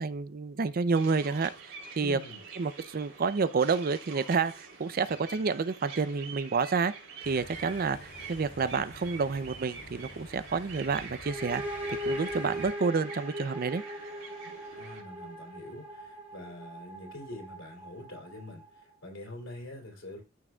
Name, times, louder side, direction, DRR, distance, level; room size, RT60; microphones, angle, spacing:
voice 1, 0.0-2.2 2.5-6.9 7.3-13.8, right 4 dB, 45° right, 0.5 m, -29 dB
sound 1, 0.9-15.0, right 5 dB, 75° right, 3.2 m, -46 dB
voice 2, 2.0-2.4 7.9-8.0 14.7-20.2, left 1 dB, 75° left, 3.2 m, -45 dB
sound 2, 7.2-12.7, left 1 dB, 55° left, 2.6 m, -49 dB
sound 3, 11.2-18.9, equal, 30° right, 2.8 m, -40 dB
13.5 x 6.2 x 2.3 m
head